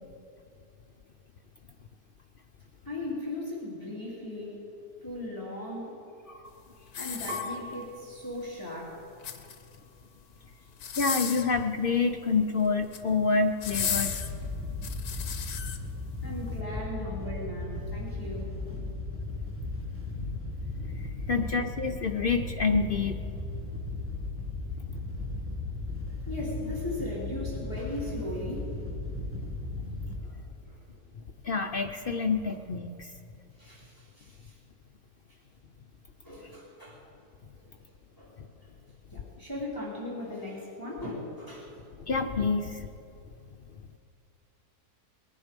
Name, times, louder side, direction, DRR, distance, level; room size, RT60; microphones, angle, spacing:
voice 1, 2.8-4.7 5.0-6.0 7.0-9.0 16.2-18.9 26.3-28.7 30.2-30.8 33.6-34.5 36.2-37.0 37.6-37.7 38.2-38.4 38.6-38.7 39.1-41.7, left 1 dB, 10° left, -6 dB, 3.0 m, -38 dB
sound 1, 6.9-7.9 9.0-9.8 10.7-11.6 12.7-13.1 13.6-15.8 16.4-16.5, left 8 dB, 70° left, 1.4 m, -34 dB
Piano, 7.3-10.0 10.7-11.4, left 2 dB, 65° right, 2.9 m, -44 dB
voice 2, 11.0-14.1 20.1-23.2 31.4-33.1 42.0-42.9, left 4 dB, 55° left, 4 dB, 0.6 m, -28 dB
Wind / Boat Water vehicle, 13.6-30.1, left 2 dB, 10° right, 1.9 m, -36 dB
21.0 x 11.0 x 5.2 m, 2.5 s
omnidirectional pair, 1.7 m